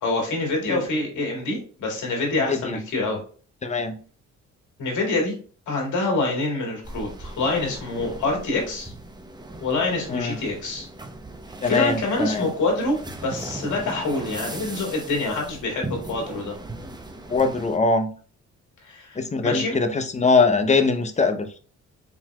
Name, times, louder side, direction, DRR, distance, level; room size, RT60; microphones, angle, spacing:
voice 1, 0.0-3.2 4.8-5.3 5.7-8.9 9.6-10.9 11.6-13.0 13.2-16.6 18.8-19.8, left 2 dB, 75° left, 0 dB, 2.1 m, -26 dB
voice 2, 2.5-2.8 3.6-4.0 10.1-10.3 11.6-12.4 17.3-18.1 19.2-21.5, left 4 dB, 25° left, 7 dB, 0.6 m, -22 dB
sound 1, 6.8-17.8, right 2 dB, 15° right, 0.7 m, -38 dB
4.5 x 3.9 x 2.2 m, 0.40 s
cardioid pair, 90°, 30 cm